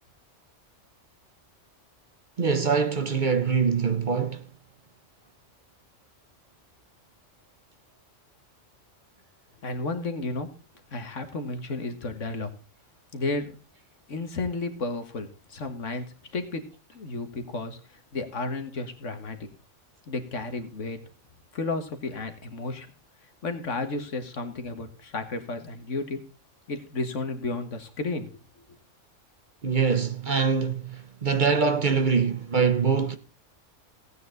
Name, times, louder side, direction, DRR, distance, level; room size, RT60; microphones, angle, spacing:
voice 1, 2.4-4.4 29.6-33.2, right 5 dB, 45° right, 1.0 m, -24 dB
voice 2, 9.6-10.5 10.9-12.5 13.1-13.5 14.1-16.0 16.3-16.6 16.9-17.8 18.1-19.4 20.1-21.0 21.5-22.9 23.4-26.2 26.7-28.6, left 3 dB, 75° left, 2.0 m, -32 dB
16.5 x 9.2 x 4.0 m
omnidirectional pair, 1.3 m